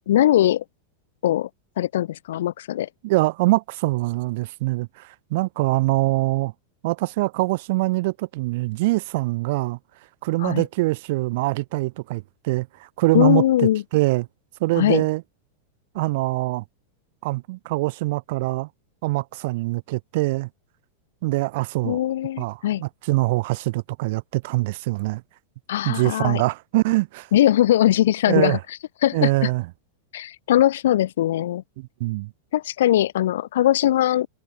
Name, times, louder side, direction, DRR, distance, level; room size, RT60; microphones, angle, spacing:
voice 1, 0.1-0.6 1.2-1.5 1.8-2.9 10.4-10.6 13.1-13.8 14.7-15.1 21.8-22.8 25.7-26.4 27.3-28.6 29.0-29.5 30.1-31.6 32.5-34.3, left 13 dB, 60° left, 1.7 m, -20 dB
voice 2, 3.0-6.5 6.8-9.8 10.2-12.7 13.0-13.4 13.9-14.3 14.6-15.2 15.9-16.6 17.2-18.7 19.0-20.5 21.2-22.0 22.4-25.2 25.8-27.3 28.3-28.6 29.1-29.6 31.8-32.3, right 21 dB, 50° right, 0.8 m, -23 dB
figure-of-eight pair, 90°, 0 cm